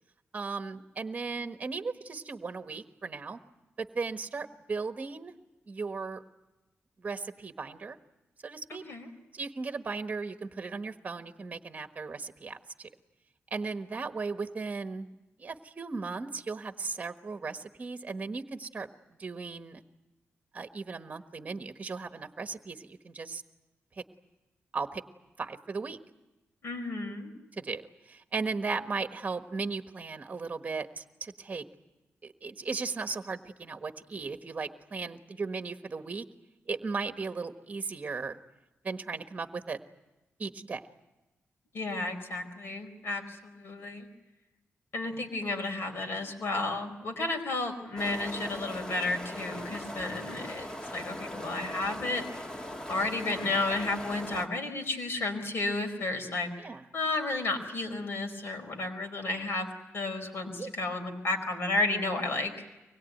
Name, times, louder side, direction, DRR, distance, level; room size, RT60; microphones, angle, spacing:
voice 1, 0.3-3.4 3.8-5.3 5.7-6.2 7.0-8.0 8.4-8.8 9.3-12.9 13.5-15.1 15.4-18.9 19.2-19.8 20.5-23.4 24.0-24.1 24.7-25.0 25.4-26.0 27.6-31.6 32.2-36.3 36.7-38.4 38.8-39.8 40.4-40.8 54.2-54.3 56.6-56.8 60.6-60.7, right 4 dB, 30° right, 7 dB, 1.3 m, -36 dB
voice 2, 26.6-27.3 41.7-44.1 44.9-50.7 50.9-52.2 52.9-56.5 56.9-59.7 59.9-62.5, left 2 dB, 60° left, 5 dB, 4.6 m, -32 dB
sound 1, 48.0-54.5, left 1 dB, 15° left, 1.6 m, -40 dB
24.5 x 21.0 x 9.3 m, 1.1 s
wide cardioid pair, 175°, 5 cm